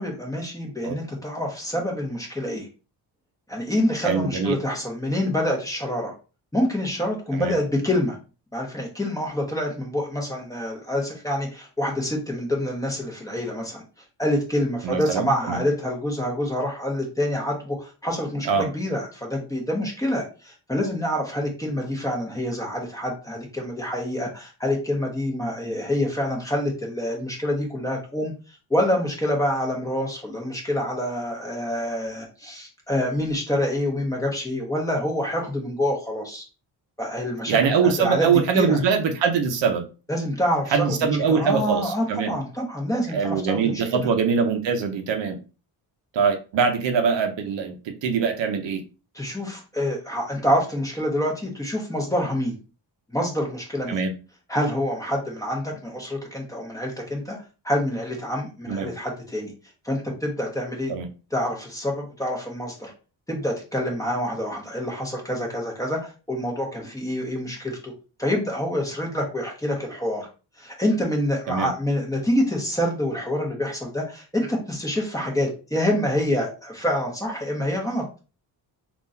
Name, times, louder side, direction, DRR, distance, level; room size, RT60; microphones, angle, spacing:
voice 1, 0.0-2.7 3.5-6.1 6.5-8.2 8.5-13.8 14.2-28.3 28.7-36.4 37.0-37.6 37.8-38.8 40.1-44.1 49.1-52.6 53.1-54.0 54.5-57.4 57.6-59.5 59.8-60.9 61.3-62.9 63.3-67.9 68.2-70.3 70.6-78.0, left 1 dB, 10° left, -1 dB, 1.1 m, -26 dB
voice 2, 4.0-4.6 7.4-7.5 14.8-15.6 18.5-18.7 37.5-39.8 40.7-42.3 43.1-45.4 46.1-48.8 53.9-54.1 58.7-58.9 60.9-61.1 71.5-71.7, right 6 dB, 75° right, 6 dB, 0.7 m, -23 dB
3.7 x 2.5 x 2.6 m, 0.33 s
cardioid pair, 110°, 44 cm